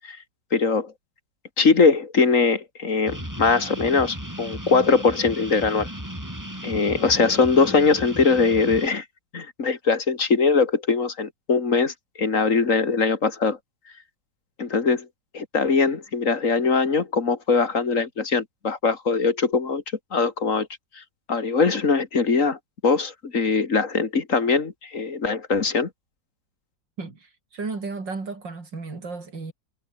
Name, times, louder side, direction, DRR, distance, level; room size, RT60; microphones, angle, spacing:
voice 1, 0.5-0.9 1.6-5.9 6.6-9.0 9.3-13.6 14.6-15.1 15.3-19.8 20.1-20.7 21.3-25.9, left 4 dB, 45° left, 2.4 m, -21 dB
sound 1, 3.1-8.9, equal, 10° right, 6.8 m, -35 dB
voice 2, 27.0-29.5, right 4 dB, 85° right, 4.8 m, -34 dB
omnidirectional pair, 1.9 m